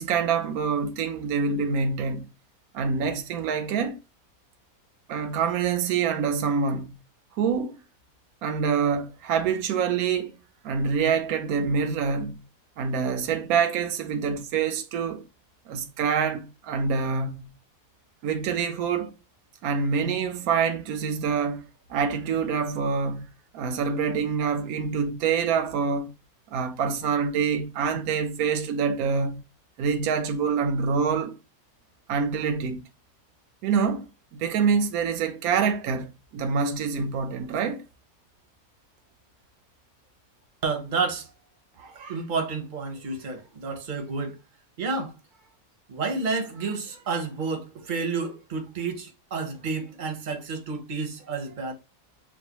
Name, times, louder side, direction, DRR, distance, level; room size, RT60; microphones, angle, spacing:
voice 1, 0.0-2.2 2.7-4.0 5.1-7.0 7.4-7.8 8.4-10.3 10.6-12.4 12.8-15.2 15.7-17.5 18.2-19.1 19.6-21.6 21.9-23.3 23.5-26.1 26.5-29.4 29.8-31.3 32.1-32.8 33.6-36.1 36.3-37.8, right 6 dB, 80° right, 1.1 m, -26 dB
voice 2, 40.6-41.3 41.8-44.4 44.8-45.2 45.9-51.7, right 4 dB, 40° right, 0.8 m, -30 dB
6.2 x 2.2 x 2.9 m
omnidirectional pair, 1.5 m